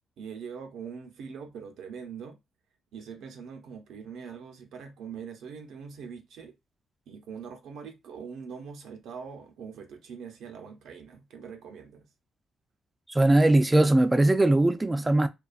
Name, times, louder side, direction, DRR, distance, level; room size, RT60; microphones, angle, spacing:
voice 1, 0.2-2.4 2.9-6.5 7.1-12.1, right 6 dB, 75° right, 0.6 m, -42 dB
voice 2, 13.1-15.3, right 2 dB, 15° right, 0.4 m, -20 dB
2.4 x 2.2 x 2.4 m
cardioid pair, 90°, 0 cm